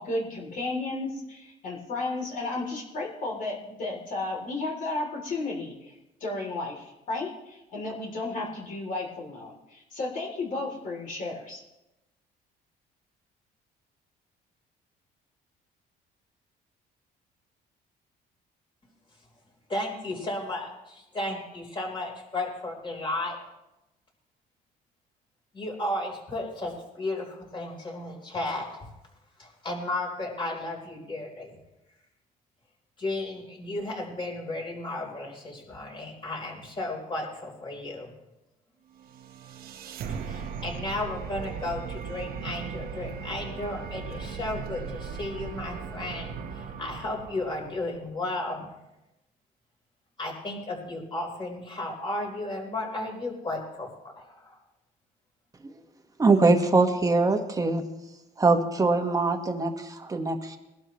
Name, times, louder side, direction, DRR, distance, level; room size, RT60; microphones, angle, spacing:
voice 1, 0.0-5.9 6.2-11.6, left 2 dB, 50° left, -1 dB, 3.3 m, -33 dB
voice 2, 19.7-23.4 25.5-28.9 29.4-31.5 33.0-38.1 40.1-48.7 50.2-54.6, left 2 dB, 30° left, 0 dB, 4.2 m, -34 dB
sound 1, 39.0-48.1, right 6 dB, 60° right, 1.2 m, -38 dB
voice 3, 56.2-57.8 58.4-60.6, right 3 dB, 20° right, 5 dB, 1.5 m, -23 dB
21.5 x 12.0 x 3.2 m, 0.95 s
cardioid pair, 110°, 17 cm